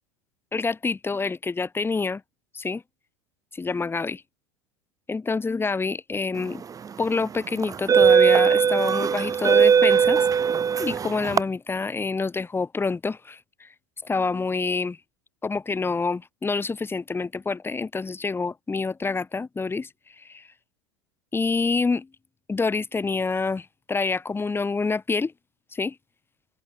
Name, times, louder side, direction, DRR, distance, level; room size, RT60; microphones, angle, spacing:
voice 1, 0.5-2.2 2.5-2.8 3.5-4.2 5.1-6.6 7.0-10.3 10.8-13.7 14.0-15.0 15.4-19.9 20.2-20.5 21.3-22.1 22.5-25.3 25.7-26.0, left 4 dB, 15° left, 5.4 m, -27 dB
sound 1, 6.6-6.9 7.6-11.4, right 7 dB, 20° right, 1.5 m, -19 dB
figure-of-eight pair, 80°, 16 cm